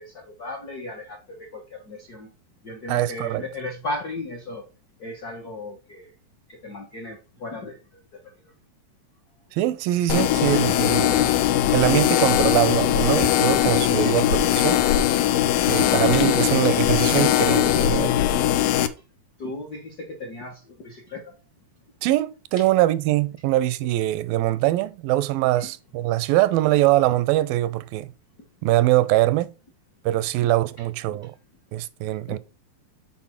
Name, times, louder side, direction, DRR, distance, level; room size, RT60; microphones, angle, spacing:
voice 1, 0.0-2.3 2.6-4.6 5.0-6.1 6.5-8.5 19.4-21.4 22.6-22.7 25.6-25.7 30.4-30.5 31.1-31.2 32.3-32.4, left 2 dB, 70° left, 0.9 m, -36 dB
voice 2, 2.9-3.4 9.5-11.3 11.7-14.8 15.7-18.1 22.0-28.1 28.6-29.5 30.1-31.4 31.7-32.4, right 15 dB, 85° right, 2.3 m, -22 dB
sound 1, 10.1-18.9, left 12 dB, 85° left, 2.4 m, -20 dB
7.1 x 4.4 x 5.7 m
omnidirectional pair, 4.1 m